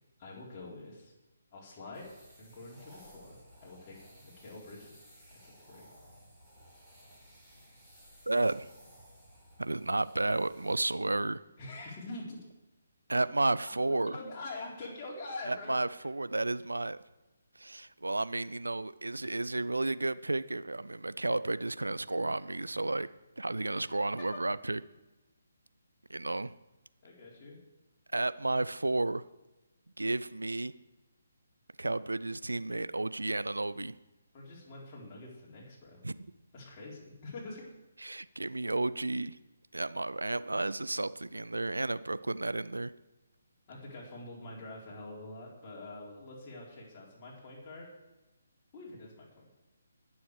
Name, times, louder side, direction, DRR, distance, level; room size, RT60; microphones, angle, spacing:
voice 1, 0.2-1.1 1.5-2.1 2.4-4.0 4.2-5.1 5.7-5.9 11.6-12.4 13.9-15.8 23.5-23.9 27.0-27.6 34.3-36.0 36.5-37.7 43.7-47.9 48.7-49.5, left 2 dB, 25° left, -4 dB, 4.3 m, -45 dB
sound 1, 1.9-10.9, equal, ahead, 5.0 m, -57 dB
voice 2, 8.3-8.7 9.6-11.4 13.1-14.2 15.5-17.0 17.6-23.1 23.4-24.8 26.1-26.5 28.1-29.2 30.0-30.7 31.8-33.9 36.0-36.2 38.0-39.4 39.7-42.9, right 2 dB, 75° right, 15 dB, 0.5 m, -32 dB
21.0 x 7.1 x 4.9 m, 1.0 s
figure-of-eight pair, 140°, 0 cm